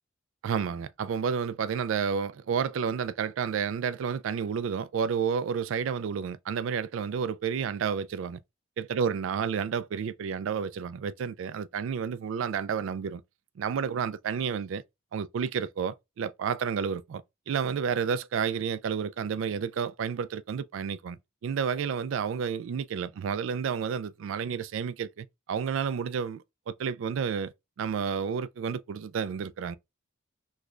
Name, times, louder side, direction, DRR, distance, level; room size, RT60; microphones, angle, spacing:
voice 1, 0.4-8.4 8.8-13.2 13.6-14.8 15.1-21.2 21.4-27.5 27.8-29.8, right 7 dB, 65° right, 0.3 m, -31 dB
3.1 x 2.3 x 3.7 m
head